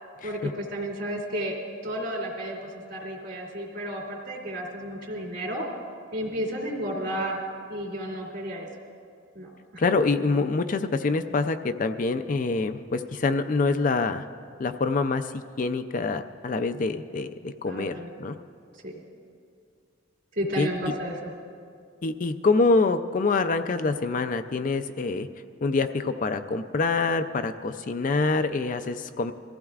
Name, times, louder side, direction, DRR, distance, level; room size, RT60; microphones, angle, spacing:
voice 1, 0.2-5.7 6.1-7.4 7.7-8.7 9.3-9.8 17.7-18.1 18.8-19.0 20.3-21.3, equal, 55° right, -2 dB, 2.8 m, -32 dB
voice 2, 9.8-14.2 14.6-17.9 18.2-18.3 20.6-20.7 22.0-25.3 25.6-29.3, left 3 dB, 40° left, 8 dB, 0.4 m, -25 dB
22.5 x 15.0 x 2.4 m, 2.3 s
head